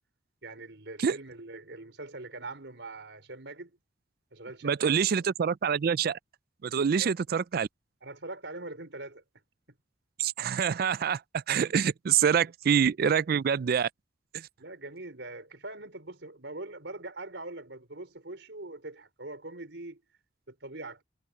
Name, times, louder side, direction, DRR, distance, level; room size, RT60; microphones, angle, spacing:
voice 1, 0.4-3.8 4.3-5.2 7.0-7.2 8.0-9.2 12.4-12.5 14.6-20.0 20.5-21.0, right 2 dB, 75° right, 4.8 m, -42 dB
voice 2, 4.6-6.2 6.6-7.7 10.2-13.9 14.3-14.5, right 7 dB, 55° right, 0.4 m, -26 dB
head